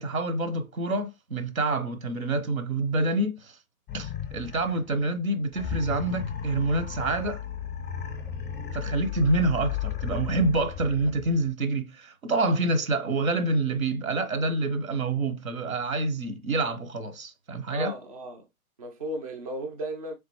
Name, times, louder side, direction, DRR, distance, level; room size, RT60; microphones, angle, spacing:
voice 1, 0.0-3.5 3.9-7.4 8.7-17.9, right 2 dB, 70° right, 0.8 m, -27 dB
sound 1, 3.9-5.0 5.5-11.5, left 9 dB, 15° left, 0.7 m, -35 dB
voice 2, 17.7-18.4 18.8-20.1, right 1 dB, 25° right, 0.4 m, -35 dB
3.6 x 3.3 x 2.9 m
figure-of-eight pair, 120°, 42 cm